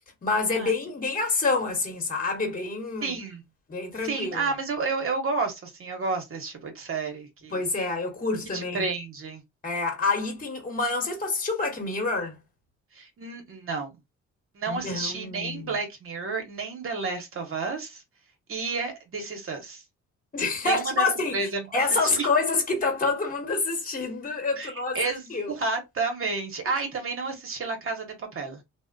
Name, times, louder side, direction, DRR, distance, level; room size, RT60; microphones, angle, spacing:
voice 1, 0.2-3.1 3.7-4.5 7.5-8.9 9.6-12.4 14.7-15.7 20.3-25.5, left 3 dB, 30° left, 1.1 m, -27 dB
voice 2, 3.0-3.4 4.0-7.6 8.5-9.4 12.9-13.9 14.5-18.0 18.5-19.8 20.6-21.1 21.3-21.6 22.0-22.3 24.6-28.6, right 4 dB, 45° right, 1.0 m, -31 dB
2.8 x 2.1 x 2.5 m
cardioid pair, 90°, 30 cm